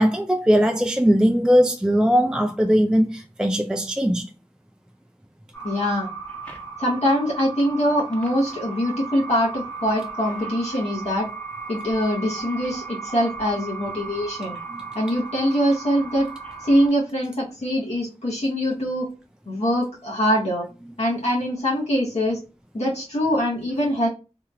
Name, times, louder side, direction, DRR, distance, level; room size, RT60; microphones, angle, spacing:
voice 1, 0.0-4.3 14.7-14.8, equal, 5° right, 0.3 m, -19 dB
sound 1, 5.5-16.9, right 5 dB, 10° left, 1.0 m, -36 dB
voice 2, 5.6-6.1 6.8-11.3 11.7-14.6 14.9-16.3 16.6-19.1 19.5-20.7 21.0-22.4 22.7-24.1, equal, 75° left, 1.0 m, -23 dB
2.9 x 2.8 x 2.3 m
wide cardioid pair, 55°, 11 cm